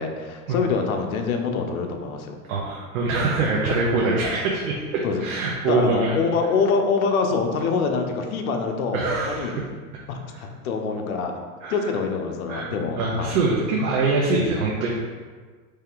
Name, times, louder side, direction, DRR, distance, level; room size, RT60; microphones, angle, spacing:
voice 1, 0.0-2.4 5.0-5.2 5.7-9.5 10.1-11.3 11.7-13.4, left 5 dB, 80° left, 4 dB, 0.8 m, -25 dB
voice 2, 2.5-6.2 8.9-9.6 10.3-10.4 11.6-11.7 12.5-14.9, right 3 dB, 75° right, -3 dB, 0.9 m, -24 dB
4.3 x 3.3 x 3.7 m, 1.5 s
supercardioid pair, 135°, 42 cm